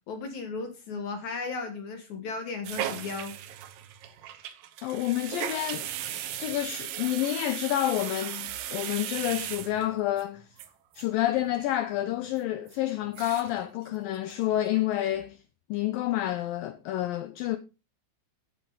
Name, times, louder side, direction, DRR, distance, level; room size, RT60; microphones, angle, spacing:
voice 1, 0.1-3.4, left 4 dB, 65° left, 2.1 m, -35 dB
sound 1, 2.6-10.2 10.6-10.7 10.9-11.0 11.3-11.7 12.0-12.1 12.7-12.8 13.0-13.6 13.9-14.0 14.3-14.8 15.2-15.3, right 11 dB, 70° right, 2.3 m, -37 dB
voice 2, 4.8-5.9 6.4-10.5 11.0-15.4 15.7-17.6, left 13 dB, 85° left, 2.0 m, -29 dB
13.5 x 8.2 x 3.9 m
omnidirectional pair, 4.8 m